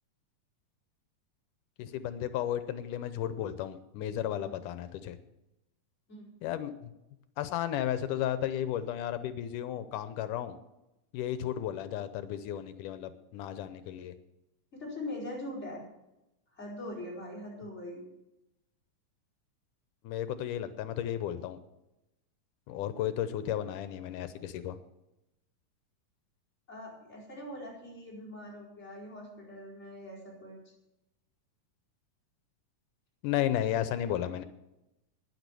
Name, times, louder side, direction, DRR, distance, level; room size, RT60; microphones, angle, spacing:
voice 1, 1.8-5.2 6.4-6.9 7.4-10.6 11.1-14.2 20.0-21.6 22.7-24.8 33.2-34.5, left 11 dB, 85° left, 12 dB, 2.3 m, -33 dB
voice 2, 14.7-15.8 16.5-18.0 26.7-30.6, left 1 dB, 20° left, -5 dB, 5.3 m, -42 dB
12.5 x 10.5 x 6.7 m, 0.92 s
omnidirectional pair, 3.6 m